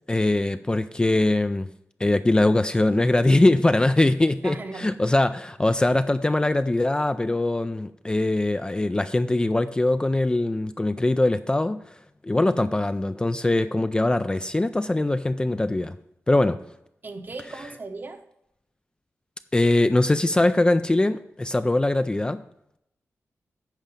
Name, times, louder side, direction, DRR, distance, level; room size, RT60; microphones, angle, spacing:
voice 1, 0.1-1.7 2.0-11.9 12.2-16.0 16.3-16.6 19.5-22.4, left 2 dB, 20° left, 10 dB, 0.3 m, -22 dB
voice 2, 4.4-4.9 17.0-18.2, right 3 dB, 40° right, 7 dB, 0.9 m, -37 dB
8.9 x 5.0 x 5.8 m, 0.78 s
wide cardioid pair, 90°, 5 cm